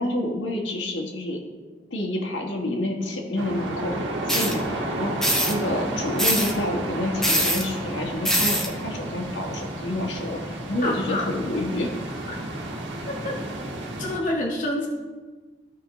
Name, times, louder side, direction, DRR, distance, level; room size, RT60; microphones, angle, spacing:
voice 1, 0.0-1.4 1.9-5.1 5.4-12.0, left 1 dB, 90° left, 1 dB, 1.5 m, -28 dB
sound 1, 3.4-14.2, right 1 dB, 90° right, 1.6 m, -32 dB
sound 2, 4.3-4.5 5.2-5.5 6.2-6.5 7.2-7.6 8.2-8.7, equal, 5° left, 0.9 m, -22 dB
voice 2, 10.8-11.3 13.1-13.4 14.0-14.9, left 1 dB, 45° left, -1 dB, 0.9 m, -28 dB
14.5 x 5.1 x 3.1 m, 1.4 s
head